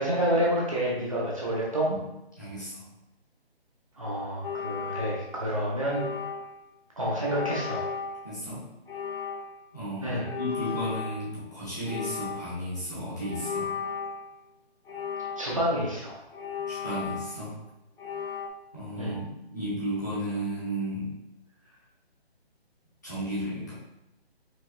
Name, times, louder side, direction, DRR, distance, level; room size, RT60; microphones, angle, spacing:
voice 1, 0.0-1.9 4.0-6.0 7.0-7.8 10.0-10.2 15.4-16.2 19.0-19.2, equal, 30° right, -5 dB, 0.6 m, -28 dB
voice 2, 2.4-2.8 8.2-8.7 9.7-13.7 16.7-17.5 18.7-21.1 23.0-23.7, equal, 15° left, -10 dB, 0.8 m, -34 dB
sound 1, 4.4-5.5 5.9-6.7 7.2-8.3 8.9-9.7 10.2-11.5 11.9-12.6 13.2-14.3 14.9-15.8 16.3-17.6 18.0-18.5, left 6 dB, 60° left, 0.6 m, -36 dB
4.7 x 2.7 x 2.6 m, 0.90 s
hypercardioid pair, 175°, 32 cm